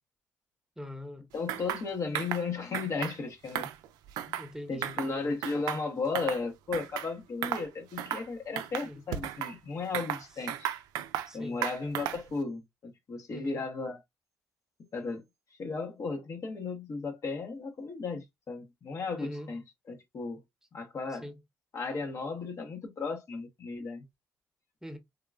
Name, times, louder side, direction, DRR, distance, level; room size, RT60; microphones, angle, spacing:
voice 1, 0.8-1.3 4.4-5.4 8.8-9.0 10.3-10.4 11.3-11.6 13.3-13.6 19.1-19.5 21.1-21.3 24.8-25.0, left 1 dB, 10° right, 0.9 m, -43 dB
voice 2, 1.3-3.7 4.3-4.4 4.7-10.7 11.3-14.0 14.9-15.2 15.6-19.6 19.9-20.4 20.7-21.2 21.7-24.1, left 4 dB, 50° left, 0.9 m, -35 dB
sound 1, 1.5-1.8 2.1-2.4 2.7-3.2 3.5-4.5 4.8-5.1 5.4-6.4 6.7-7.1 7.4-7.7 8.0-8.3 8.6-9.5 9.9-11.3 11.6-12.3, right 11 dB, 80° right, 0.3 m, -34 dB
3.5 x 2.3 x 2.3 m
supercardioid pair, 55°, 7 cm